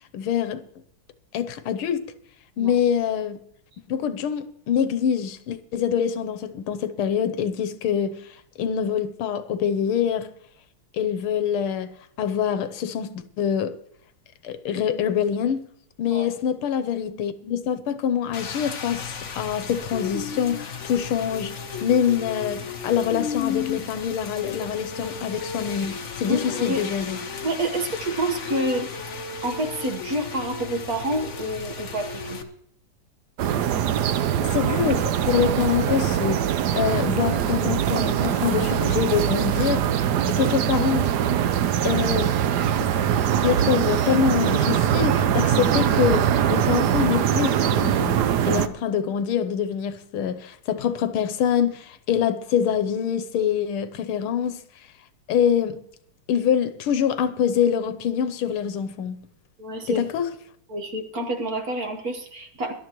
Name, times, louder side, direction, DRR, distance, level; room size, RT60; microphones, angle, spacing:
voice 1, 0.1-0.6 1.3-2.1 2.6-3.4 3.9-8.2 8.6-10.3 10.9-11.9 12.2-13.7 14.4-15.6 16.0-21.5 21.8-27.2 34.4-36.4 36.8-41.1 41.8-42.3 42.8-42.9 43.4-48.2 48.5-54.6 55.3-55.8 56.3-59.2 59.9-60.3, left 8 dB, 85° left, 1.7 m, -25 dB
Rain, 18.3-32.4, left 6 dB, 45° left, 1.1 m, -34 dB
voice 2, 26.3-26.8 27.4-28.9 29.4-32.4 59.6-60.0 60.7-62.7, right 1 dB, 50° right, 1.7 m, -28 dB
sound 1, 33.4-48.7, right 9 dB, 65° right, 1.1 m, -22 dB
21.0 x 12.0 x 3.1 m
omnidirectional pair, 2.3 m